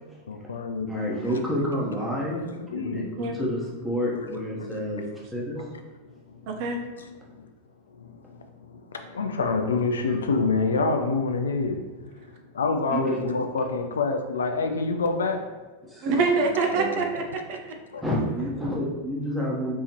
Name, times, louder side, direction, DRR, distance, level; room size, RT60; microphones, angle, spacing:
voice 1, 0.3-1.4 2.3-3.1 4.7-4.8 6.3-6.7 7.0-7.4 7.9-15.5 17.9-18.0, left 4 dB, 70° left, 6 dB, 0.4 m, -28 dB
voice 2, 0.9-2.4 2.7-5.0 5.3-5.6 12.9-13.1 15.8-16.1 16.7-17.0 18.0-19.7, equal, 5° right, -4 dB, 1.1 m, -29 dB
voice 3, 6.5-6.8 16.0-17.6, right 4 dB, 45° right, 3 dB, 0.5 m, -25 dB
4.2 x 3.4 x 3.0 m, 1.3 s
figure-of-eight pair, 90°, 0 cm